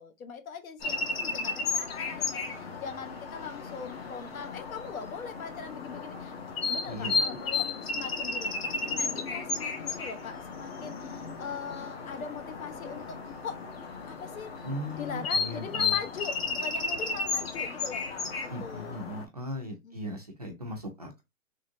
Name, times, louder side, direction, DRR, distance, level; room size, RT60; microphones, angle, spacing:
voice 1, 0.0-6.3 6.7-13.7 14.1-14.7 15.0-19.1 19.8-19.9, left 6 dB, 70° left, 1.1 m, -41 dB
sound 1, 0.8-19.2, left 4 dB, 45° left, 0.8 m, -34 dB
voice 2, 6.9-7.2 14.6-16.0 18.5-21.2, left 1 dB, 30° right, 0.4 m, -38 dB
3.7 x 3.2 x 2.6 m
hypercardioid pair, 170°, 44 cm